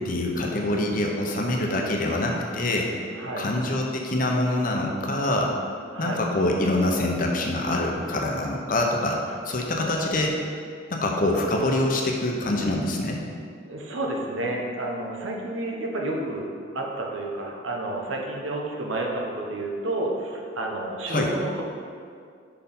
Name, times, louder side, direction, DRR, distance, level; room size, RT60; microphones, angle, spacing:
voice 1, 0.0-2.9 3.4-5.5 6.0-10.3 10.9-13.2 21.1-21.3, left 1 dB, 45° left, 0 dB, 0.7 m, -25 dB
voice 2, 3.2-3.5 5.9-6.2 13.6-16.5 16.7-21.6, right 2 dB, 90° right, 0 dB, 1.0 m, -30 dB
5.4 x 4.4 x 5.3 m, 2.2 s
head